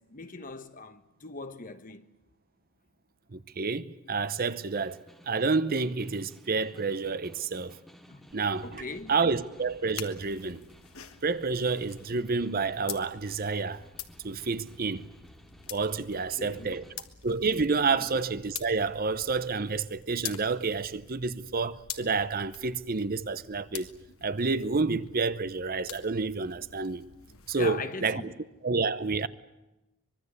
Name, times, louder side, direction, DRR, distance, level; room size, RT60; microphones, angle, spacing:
voice 1, 0.0-2.1 8.1-8.3 8.6-9.2 16.1-16.8 17.9-18.1 27.5-28.3, left 3 dB, 40° left, 1.3 m, -41 dB
voice 2, 3.3-5.0 5.3-7.8 8.3-8.8 9.1-10.6 11.2-13.8 14.2-15.1 15.7-16.8 17.2-23.9 24.2-27.0 27.5-28.2 28.6-29.3, right 4 dB, 40° right, 0.8 m, -29 dB
Snare drum, 4.3-17.0, equal, ahead, 2.2 m, -57 dB
sound 1, 8.3-27.7, left 9 dB, 75° left, 1.7 m, -46 dB
24.5 x 22.0 x 8.2 m
head